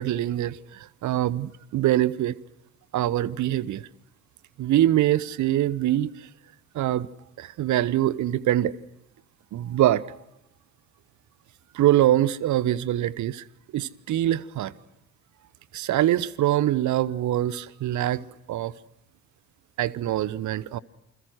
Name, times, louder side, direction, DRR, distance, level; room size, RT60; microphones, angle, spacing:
voice 1, 0.0-2.3 2.9-3.8 4.6-6.1 6.7-7.1 7.4-8.7 9.5-10.2 11.7-13.4 13.7-14.7 15.7-18.2 18.5-18.7 19.8-20.8, right 13 dB, 50° right, 21 dB, 1.0 m, -24 dB
29.0 x 21.5 x 6.3 m, 0.90 s
figure-of-eight pair, 50°, 39 cm